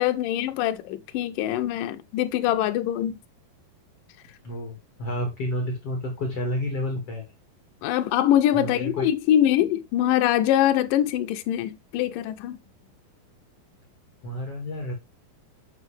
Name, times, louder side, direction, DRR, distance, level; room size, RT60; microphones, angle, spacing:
voice 1, 0.0-3.2 7.8-12.6, left 12 dB, 75° left, 2.2 m, -23 dB
voice 2, 4.4-7.3 8.5-9.1 14.2-14.9, left 1 dB, 40° left, 2.8 m, -30 dB
9.6 x 6.5 x 3.4 m
omnidirectional pair, 4.5 m